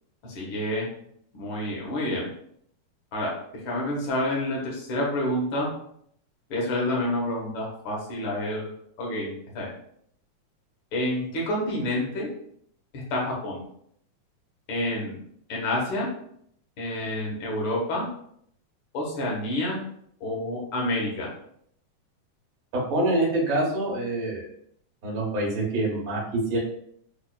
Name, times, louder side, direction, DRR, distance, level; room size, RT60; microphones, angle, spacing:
voice 1, 0.3-0.9 1.3-2.3 3.1-3.3 3.6-5.7 6.5-8.7 9.0-9.3 9.5-9.7 10.9-12.3 12.9-13.6 14.7-15.1 15.5-16.1 16.8-18.1 18.9-19.8 20.2-21.3, left 1 dB, 65° left, -3 dB, 1.2 m, -28 dB
voice 2, 22.7-24.5 25.0-26.6, right 1 dB, 80° right, -3 dB, 0.7 m, -26 dB
5.7 x 2.4 x 2.2 m, 0.68 s
omnidirectional pair, 3.6 m